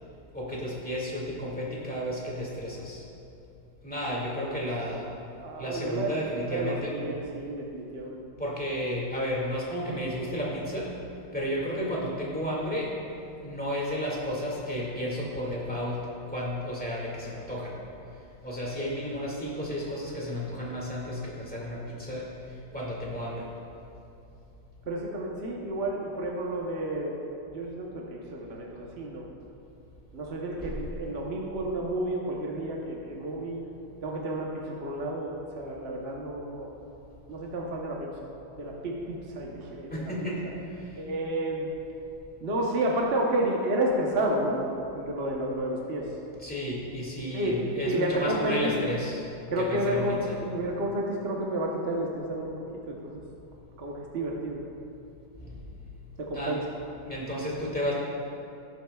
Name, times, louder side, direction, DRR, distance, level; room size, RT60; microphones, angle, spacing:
voice 1, 0.3-3.0 3.8-5.1 5.5-6.9 8.4-10.9 11.3-12.9 13.4-17.8 18.4-23.5 30.6-30.7 39.9-41.0 46.4-49.3 49.6-50.4 55.4-55.6 56.3-56.6 57.1-57.9, equal, 5° left, -5 dB, 1.8 m, -32 dB
voice 2, 5.3-6.1 6.5-8.2 24.9-27.1 27.5-29.2 30.1-33.6 34.0-36.7 37.3-38.1 38.6-40.1 40.9-41.7 42.4-44.6 44.9-46.1 47.3-47.6 47.8-48.7 49.5-53.2 53.8-54.6 56.2-56.6, right 1 dB, 45° right, -2 dB, 0.8 m, -31 dB
18.5 x 7.4 x 2.3 m, 2.8 s
omnidirectional pair, 2.2 m